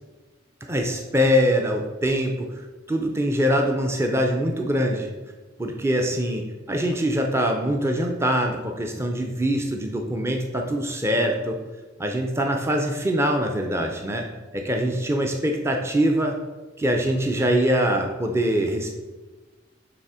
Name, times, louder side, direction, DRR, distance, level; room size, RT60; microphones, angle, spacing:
voice 1, 0.7-2.5 2.9-5.1 5.6-11.6 12.0-14.3 14.5-16.4 16.8-18.9, equal, 15° right, 2 dB, 0.5 m, -23 dB
6.9 x 3.3 x 4.8 m, 1.2 s
head